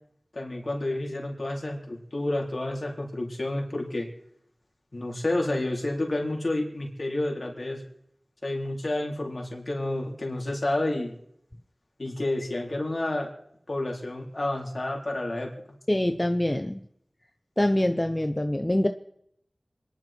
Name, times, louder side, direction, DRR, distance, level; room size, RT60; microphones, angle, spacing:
voice 1, 0.3-4.1 4.9-7.8 8.4-11.2 12.0-13.3 13.7-15.5, left 1 dB, 55° left, 0 dB, 4.0 m, -30 dB
voice 2, 15.9-16.8 17.6-18.9, left 1 dB, 20° left, 7 dB, 0.9 m, -24 dB
27.0 x 11.0 x 4.5 m, 0.74 s
wide cardioid pair, 45°, 0 cm